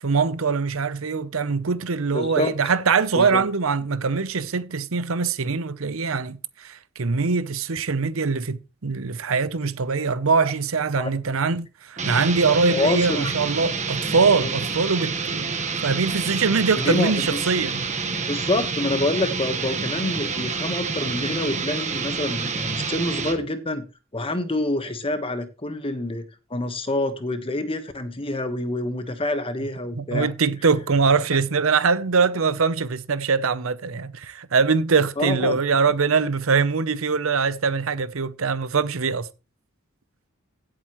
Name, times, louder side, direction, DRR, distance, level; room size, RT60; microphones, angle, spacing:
voice 1, 0.0-17.8 29.9-39.3, right 5 dB, 75° right, 0.8 m, -23 dB
voice 2, 2.1-2.5 3.1-3.4 11.0-11.1 12.7-13.3 14.4-14.5 16.8-17.2 18.3-23.8 24.1-26.2 26.5-30.3 35.2-35.6, left 2 dB, 25° left, 1.3 m, -27 dB
sound 1, 12.0-23.4, right 4 dB, 35° right, 1.4 m, -28 dB
16.0 x 7.7 x 3.1 m
head